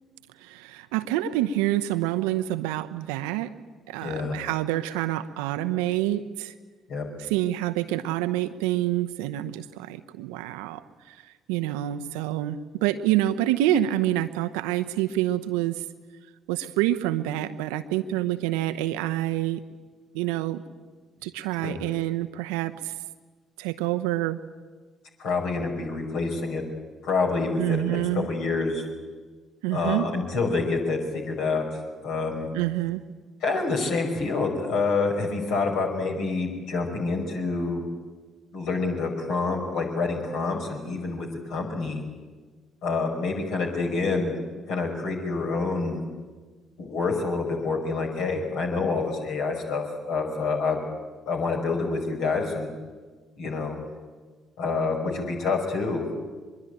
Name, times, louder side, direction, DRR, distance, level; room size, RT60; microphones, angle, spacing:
voice 1, 0.4-3.5 3.9-6.5 7.3-15.8 16.5-19.6 20.1-20.6 21.2-22.9 23.6-24.4 27.6-28.3 29.6-30.1 32.5-33.0, right 14 dB, 70° right, 10 dB, 0.9 m, -27 dB
voice 2, 4.0-4.4 6.9-7.1 21.6-21.8 25.2-26.6 27.0-28.9 29.7-32.5 33.4-37.8 38.5-42.0 42.8-44.4 44.7-46.0 46.8-50.8 51.3-52.7 53.4-53.8 54.6-56.1, left 4 dB, 60° left, 1 dB, 5.3 m, -27 dB
24.5 x 22.0 x 9.0 m, 1.4 s
figure-of-eight pair, 45°, 0 cm